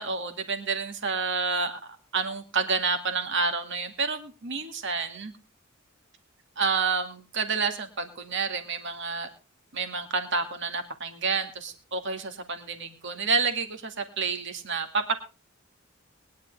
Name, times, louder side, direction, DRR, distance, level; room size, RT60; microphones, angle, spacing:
voice 1, 0.0-1.8 2.1-5.3 6.6-9.3 9.7-15.2, right 4 dB, 60° right, 7 dB, 2.2 m, -29 dB
21.5 x 10.5 x 3.4 m, 0.30 s
head